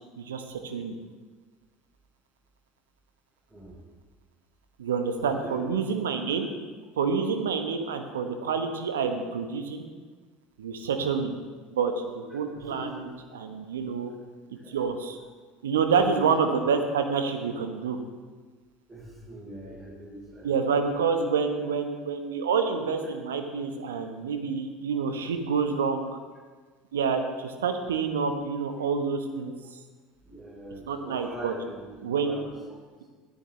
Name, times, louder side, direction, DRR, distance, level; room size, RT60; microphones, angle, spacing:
voice 1, 0.2-0.9 4.8-6.5 7.0-9.8 10.6-11.4 11.7-13.1 13.3-14.1 14.7-15.2 15.6-18.0 20.4-26.1 26.9-29.5 30.9-31.5 32.0-32.4, right 5 dB, 75° right, 6 dB, 1.0 m, -28 dB
voice 2, 3.5-3.9 5.2-6.0 6.4-6.5 12.5-12.9 14.5-14.8 15.9-16.3 18.9-20.7 21.1-21.2 30.2-32.6 33.0-33.1, right 1 dB, 20° right, -6 dB, 3.8 m, -43 dB
13.0 x 12.5 x 3.2 m, 1.5 s
figure-of-eight pair, 70°, 0 cm